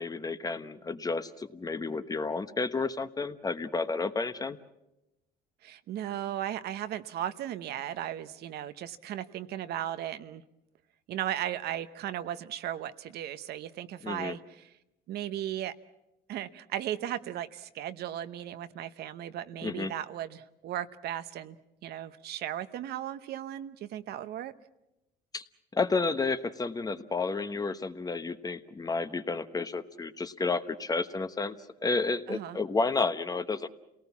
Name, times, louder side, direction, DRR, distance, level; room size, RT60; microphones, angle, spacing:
voice 1, 0.0-4.6 14.0-14.3 19.6-19.9 25.3-25.4 25.7-31.5 31.8-33.7, left 3 dB, 20° left, 11 dB, 1.0 m, -31 dB
voice 2, 5.6-10.4 11.1-14.7 15.1-15.7 16.3-21.6 21.8-24.5 32.3-32.6, right 11 dB, 70° right, 11 dB, 1.0 m, -36 dB
29.0 x 18.5 x 7.2 m, 0.91 s
cardioid pair, 110°, 17 cm